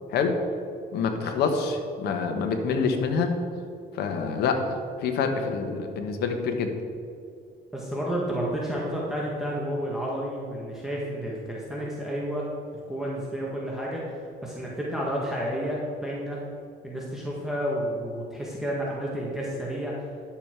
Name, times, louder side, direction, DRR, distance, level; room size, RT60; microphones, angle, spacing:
voice 1, 0.9-3.3 3.9-4.6 5.0-6.7, left 5 dB, 75° left, 5 dB, 1.3 m, -26 dB
voice 2, 7.7-12.5 12.9-14.0 14.4-16.4 16.8-19.9, equal, ahead, -5 dB, 1.6 m, -31 dB
10.5 x 7.2 x 4.6 m, 2.4 s
cardioid pair, 110°, 17 cm